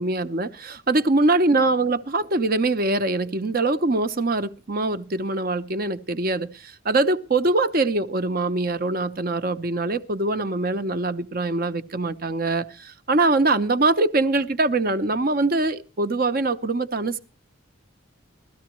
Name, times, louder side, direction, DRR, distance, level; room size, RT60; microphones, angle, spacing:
voice 1, 0.0-17.2, right 2 dB, 45° right, 0.7 m, -23 dB
17.0 x 13.5 x 3.0 m
head